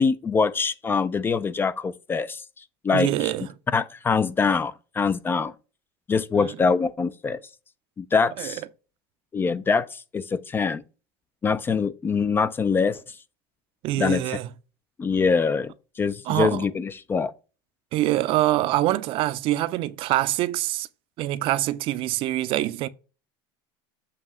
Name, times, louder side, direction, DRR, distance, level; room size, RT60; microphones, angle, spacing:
voice 1, 0.0-2.4 2.8-3.3 3.7-5.5 6.1-7.4 8.0-8.6 9.3-10.8 11.4-13.0 14.0-14.4 15.0-17.3, left 5 dB, 20° left, 0.3 m, -24 dB
voice 2, 2.9-3.5 6.4-6.6 8.4-8.5 13.8-14.5 16.2-16.7 17.9-20.9 21.2-22.9, right 15 dB, 50° right, 0.5 m, -25 dB
7.5 x 2.8 x 6.0 m
supercardioid pair, 135°, 12 cm